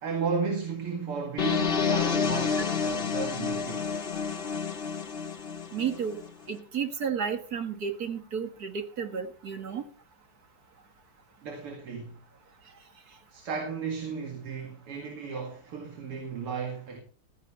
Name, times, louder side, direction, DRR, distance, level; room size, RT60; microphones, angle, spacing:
voice 1, 0.0-4.0 11.4-12.2 13.3-17.0, right 5 dB, 90° right, 3.1 m, -34 dB
sound 1, 1.4-6.3, left 6 dB, 35° left, 1.0 m, -29 dB
voice 2, 5.7-6.2 6.5-9.9, right 7 dB, 45° right, 1.9 m, -32 dB
15.0 x 14.0 x 3.3 m
omnidirectional pair, 2.4 m